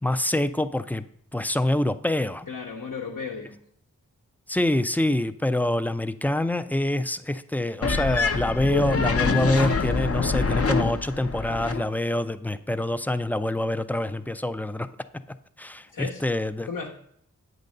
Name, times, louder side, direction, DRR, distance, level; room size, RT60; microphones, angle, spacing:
voice 1, 0.0-1.0 1.3-2.5 4.5-14.9 15.6-16.7, left 1 dB, 5° left, 12 dB, 0.4 m, -26 dB
voice 2, 2.5-3.6 15.9-16.2 16.7-16.9, left 5 dB, 75° left, -2 dB, 1.0 m, -34 dB
sound 1, 7.8-11.8, left 4 dB, 45° left, 0.6 m, -25 dB
8.2 x 4.0 x 6.5 m, 0.67 s
wide cardioid pair, 50°, 32 cm